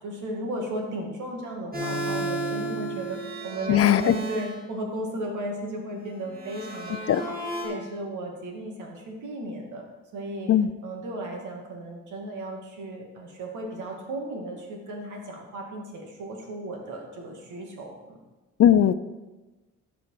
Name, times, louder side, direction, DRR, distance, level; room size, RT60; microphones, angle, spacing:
voice 1, 0.0-7.4 7.6-9.8 10.1-10.5 10.8-18.2, right 1 dB, 80° right, 1 dB, 2.3 m, -35 dB
sound 1, 1.7-4.6 6.3-7.6, right 2 dB, 30° right, 2.9 m, -32 dB
voice 2, 3.7-4.1 7.1-7.2 10.5-10.7 18.6-18.9, left 10 dB, 50° left, 14 dB, 0.5 m, -18 dB
14.0 x 4.9 x 4.9 m, 1.2 s
cardioid pair, 90°, 30 cm